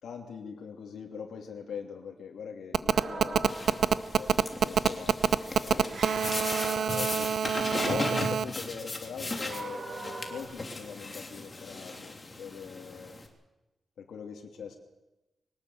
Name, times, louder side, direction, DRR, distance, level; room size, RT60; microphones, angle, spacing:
voice 1, 0.0-5.9 6.9-7.3 7.8-9.8 10.3-13.1 14.0-14.8, left 6 dB, 90° left, 1 dB, 2.9 m, -42 dB
Telephone, 2.7-8.4, right 7 dB, 65° right, 0.8 m, -25 dB
sound 1, 2.9-4.2 5.8-7.6 9.2-10.4, right 2 dB, 45° right, 7.2 m, -41 dB
sound 2, 3.4-13.3, left 2 dB, 20° left, 3.1 m, -37 dB
23.0 x 19.0 x 8.0 m, 1.0 s
wide cardioid pair, 160°, 0 cm